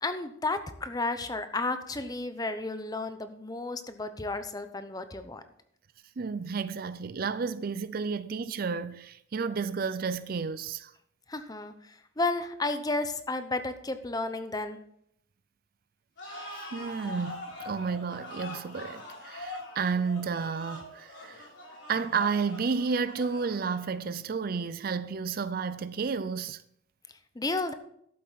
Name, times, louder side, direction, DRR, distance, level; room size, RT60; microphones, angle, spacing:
voice 1, 0.0-5.4 11.3-14.8 27.3-27.7, left 2 dB, 20° left, 0.7 m, -32 dB
voice 2, 6.2-10.9 16.7-21.5 21.9-26.6, right 5 dB, 50° right, 0.4 m, -31 dB
sound 1, 16.2-24.0, left 1 dB, 70° left, 3.7 m, -43 dB
12.5 x 7.6 x 4.0 m
head